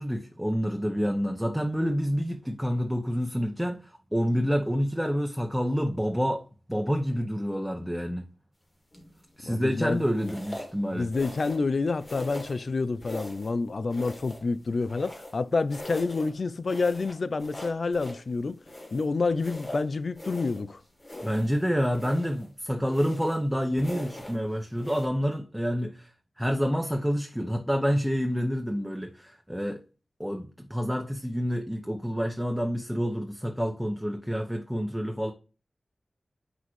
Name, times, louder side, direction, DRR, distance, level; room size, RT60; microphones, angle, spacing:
voice 1, 0.0-6.4 6.7-8.3 9.4-11.1 21.2-26.1 26.4-29.8 30.2-35.3, equal, 5° right, 0.9 m, -28 dB
sound 1, 8.9-9.3 10.2-10.8 11.1-11.7 12.0-12.6 13.0-13.6 13.9-15.4 15.7-16.3 16.7-18.2 18.6-20.7 21.0-21.6 21.9-22.5 22.9-23.4 23.8-24.4 24.8-25.1, left 1 dB, 25° left, 1.8 m, -41 dB
voice 2, 9.4-10.3 10.9-18.6 18.9-20.8, left 3 dB, 60° left, 0.5 m, -28 dB
7.2 x 6.1 x 3.2 m
wide cardioid pair, 80°, 0 cm